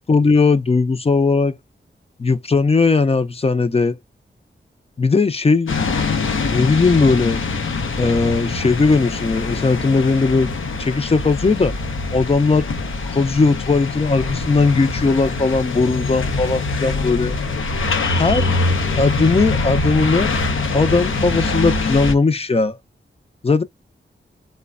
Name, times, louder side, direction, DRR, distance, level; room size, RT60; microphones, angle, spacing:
voice 1, 0.1-1.6 2.2-4.0 5.0-5.7 6.5-7.4 8.0-10.5 10.8-11.8 12.1-12.7 13.1-17.4 18.2-18.4 19.0-20.3 20.7-22.8 23.4-23.6, left 4 dB, 30° left, 0.5 m, -18 dB
sound 1, 5.7-22.1, left 3 dB, 85° left, 0.6 m, -23 dB
3.1 x 2.1 x 2.4 m
cardioid pair, 60°, 20 cm